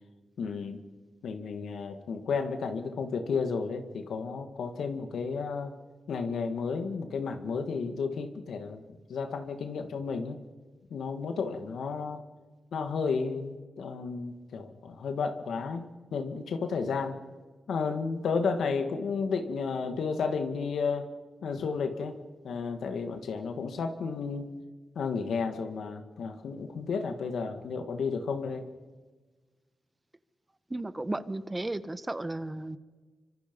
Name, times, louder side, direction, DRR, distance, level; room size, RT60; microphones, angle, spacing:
voice 1, 0.4-0.8 1.2-5.7 6.1-8.8 9.1-10.4 10.9-12.2 12.7-17.2 17.7-21.1 21.4-22.2 22.4-24.5 25.0-28.6, left 5 dB, 90° left, 7 dB, 1.9 m, -32 dB
voice 2, 30.7-32.8, right 2 dB, 20° right, 14 dB, 1.2 m, -34 dB
25.0 x 25.0 x 5.4 m, 1.3 s
cardioid pair, 75°, 0 cm